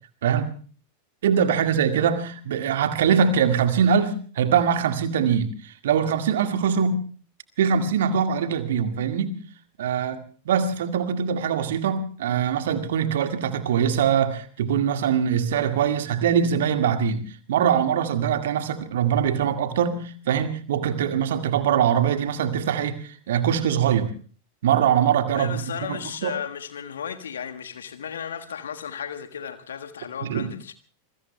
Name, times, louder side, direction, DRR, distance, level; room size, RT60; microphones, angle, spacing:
voice 1, 1.2-7.0 7.6-9.4 9.8-10.2 10.5-17.2 17.5-24.1 24.6-26.4 30.2-30.5, right 8 dB, 60° right, 8 dB, 1.8 m, -23 dB
voice 2, 25.3-30.7, left 8 dB, 65° left, 8 dB, 1.4 m, -34 dB
26.0 x 23.0 x 2.2 m, 0.41 s
figure-of-eight pair, 90°, 0 cm